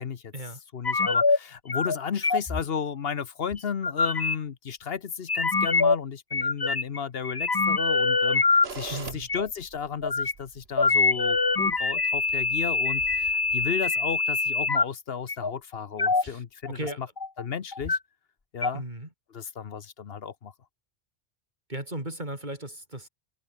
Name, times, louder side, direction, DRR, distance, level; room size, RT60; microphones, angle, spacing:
voice 1, 0.0-0.3 0.7-17.1 17.4-18.0 18.5-18.8 19.3-20.5, left 7 dB, 70° left, 1.2 m, -34 dB
sound 1, 0.8-1.4 1.7-2.0 2.2-2.6 3.5-4.4 5.3-6.0 6.3-7.0 7.2-8.7 9.3-9.5 10.0-10.3 10.8-14.8 15.3-15.5 16.0-16.3 16.6-17.4 17.7-18.0 18.6-18.7, left 4 dB, 25° left, 0.8 m, -24 dB
sound 2, 8.6-13.7, right 5 dB, 80° right, 1.8 m, -44 dB
voice 2, 8.9-9.3 16.2-16.4 16.7-17.0 18.7-19.1 21.7-23.1, right 1 dB, 50° right, 5.8 m, -36 dB
omnidirectional pair, 1.0 m